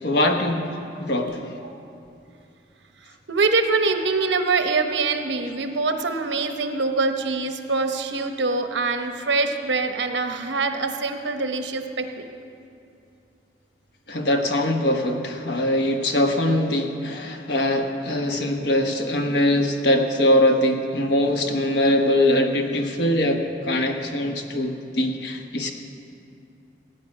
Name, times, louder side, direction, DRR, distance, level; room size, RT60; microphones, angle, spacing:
voice 1, 0.0-0.7 1.0-1.3 14.1-25.7, left 1 dB, 65° left, 4 dB, 1.1 m, -22 dB
voice 2, 3.3-12.3, right 3 dB, 75° right, 6 dB, 0.9 m, -24 dB
17.5 x 9.3 x 5.4 m, 2.6 s
head